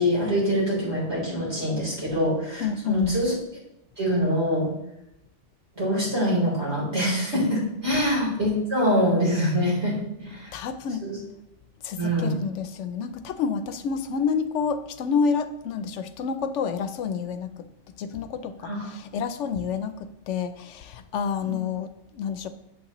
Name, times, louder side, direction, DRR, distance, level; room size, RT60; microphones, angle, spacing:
voice 1, 0.0-3.3 4.0-4.7 5.8-10.5 11.0-11.2 11.9-12.4 18.6-18.9 21.4-21.6, equal, 70° right, 4.0 m, -24 dB
voice 2, 2.6-3.1 10.5-11.1 11.8-17.7 18.0-22.5, left 6 dB, 85° left, 0.9 m, -29 dB
8.3 x 7.8 x 3.0 m
omnidirectional pair, 1.2 m